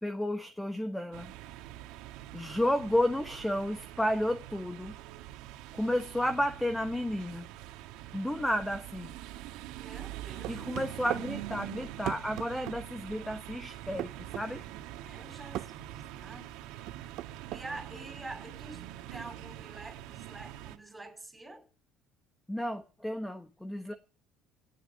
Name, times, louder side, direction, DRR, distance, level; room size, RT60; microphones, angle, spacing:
voice 1, 0.0-1.3 2.3-4.9 5.7-7.5 8.1-9.1 10.5-14.6 22.5-23.9, left 1 dB, 5° left, 1.2 m, -32 dB
gas station walkaround, 1.1-20.8, right 13 dB, 80° right, 1.9 m, -44 dB
voice 2, 9.7-10.6 15.0-16.5 17.5-21.7, right 2 dB, 10° right, 5.3 m, -47 dB
sound 1, 10.4-11.3 12.1-12.8 14.0-14.5 15.5-15.7 16.9-17.7, right 15 dB, 65° right, 0.7 m, -36 dB
18.0 x 9.2 x 5.7 m
cardioid pair, 120°, 0 cm